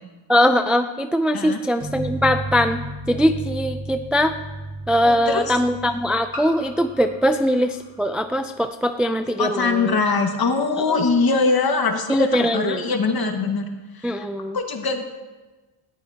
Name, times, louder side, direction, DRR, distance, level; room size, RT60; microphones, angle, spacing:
voice 1, 0.3-2.8 3.1-4.4 4.9-10.0 10.8-11.0 12.1-12.8 14.0-14.6, equal, ahead, 7 dB, 0.4 m, -21 dB
sound 1, 1.8-7.3, right 2 dB, 50° right, 5.3 m, -33 dB
sound 2, 2.4-2.5 4.1-4.2 6.3-8.8, left 2 dB, 25° left, 3.6 m, -41 dB
voice 2, 5.0-5.6 9.4-13.7 14.0-14.3 14.5-15.0, left 4 dB, 45° left, 3 dB, 1.8 m, -22 dB
19.0 x 14.0 x 2.9 m, 1.2 s
wide cardioid pair, 130°, 48 cm